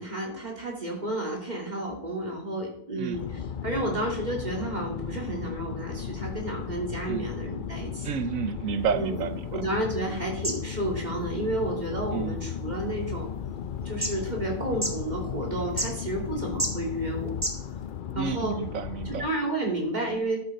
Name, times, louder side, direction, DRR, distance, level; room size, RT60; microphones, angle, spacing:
voice 1, 0.0-8.1 8.9-13.3 13.8-17.3 18.1-18.6 19.0-20.4, right 1 dB, 30° right, 3.0 m, -31 dB
sound 1, 3.1-19.3, left 8 dB, 65° left, 0.5 m, -35 dB
voice 2, 8.0-9.6 12.1-12.4 18.1-19.3 19.7-19.8, right 7 dB, 85° right, 1.2 m, -31 dB
sound 2, 8.7-18.0, right 1 dB, 10° right, 1.7 m, -38 dB
12.5 x 8.5 x 4.2 m
omnidirectional pair, 1.4 m